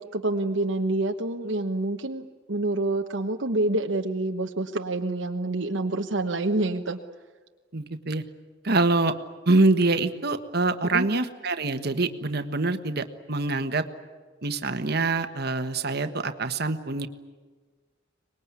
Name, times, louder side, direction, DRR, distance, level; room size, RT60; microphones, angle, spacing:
voice 1, 0.0-7.0 10.9-11.1, right 2 dB, 70° right, 4 dB, 1.2 m, -27 dB
voice 2, 7.7-8.2 8.6-9.1 9.4-13.9 14.4-17.1, right 2 dB, 55° right, 8 dB, 1.4 m, -25 dB
24.5 x 20.5 x 9.6 m, 1.4 s
head